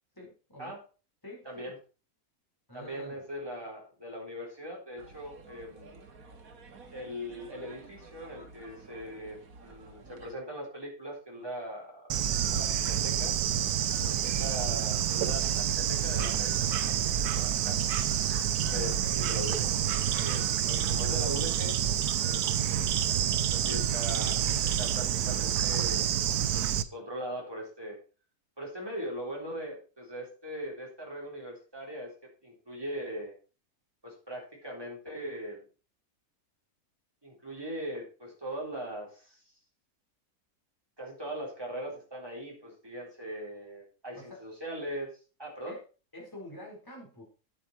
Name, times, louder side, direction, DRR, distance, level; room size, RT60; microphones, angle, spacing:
voice 1, 0.1-0.7 1.2-1.5 2.7-3.2 18.8-19.1 22.8-23.0 44.1-44.4 45.7-45.8 46.1-47.2, left 1 dB, 15° left, -2 dB, 4.5 m, -47 dB
voice 2, 2.7-6.0 6.9-13.3 13.9-17.8 18.6-19.7 20.2-21.8 22.2-22.8 23.5-26.1 26.5-28.0 28.6-32.1 32.4-33.3 34.0-35.7 37.2-39.4 41.0-45.1 45.4-45.7, equal, 15° right, -2 dB, 4.0 m, -40 dB
sound 1, 5.0-10.3, right 4 dB, 65° right, 1.9 m, -52 dB
Bird / Insect, 12.1-26.8, right 9 dB, 80° right, 1.3 m, -28 dB
9.4 x 8.9 x 4.4 m, 0.35 s
omnidirectional pair, 1.6 m